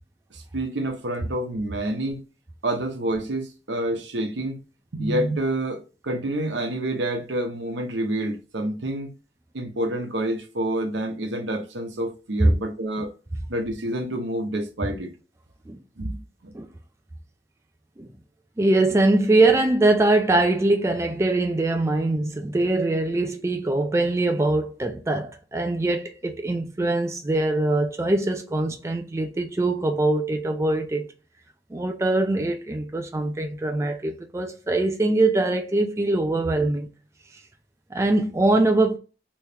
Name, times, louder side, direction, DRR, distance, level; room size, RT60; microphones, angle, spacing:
voice 1, 0.3-2.2 2.6-4.6 4.9-5.8 6.0-9.1 9.5-13.1 13.5-15.1 16.0-16.2 16.4-16.5, right 1 dB, 75° right, 0.9 m, -28 dB
voice 2, 18.6-31.1 31.7-36.9 37.9-39.0, right 2 dB, 15° right, 0.3 m, -22 dB
3.4 x 3.1 x 2.8 m
head